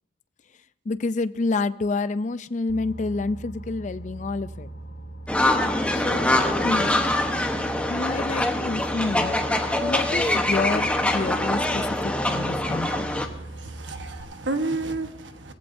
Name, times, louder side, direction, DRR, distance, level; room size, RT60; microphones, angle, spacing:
voice 1, 0.9-4.7 5.9-6.3 6.6-6.9 7.9-9.4 9.8-13.1, left 3 dB, 40° left, 14 dB, 0.4 m, -28 dB
Boat Water vehicle, 2.7-14.2, right 2 dB, 75° left, 4.5 m, -39 dB
sound 1, 5.3-13.3, left 1 dB, 5° left, 1.0 m, -24 dB
voice 2, 12.8-15.5, right 2 dB, 85° right, 6 dB, 1.3 m, -32 dB
21.0 x 15.5 x 2.7 m, 0.81 s
head